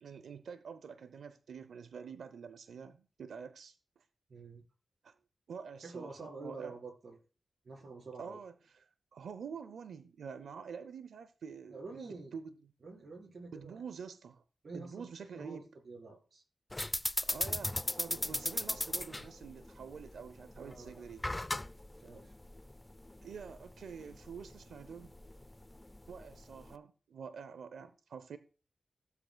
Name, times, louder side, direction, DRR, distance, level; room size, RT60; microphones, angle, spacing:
voice 1, 0.0-3.7 5.0-5.1 5.5-6.7 8.2-12.0 12.3-12.7 13.5-14.4 14.7-15.6 17.2-21.2 23.2-25.1 26.1-28.4, right 6 dB, 90° right, 0.6 m, -47 dB
voice 2, 4.3-4.6 5.8-7.2 7.6-8.4 11.7-12.3 12.8-13.8 14.6-15.1 15.3-16.4 20.6-21.0 22.0-22.3, right 3 dB, 70° right, 4.1 m, -47 dB
sound 1, 16.7-26.8, left 1 dB, 25° left, 0.6 m, -38 dB
15.0 x 7.9 x 2.3 m
cardioid pair, 40°, 0 cm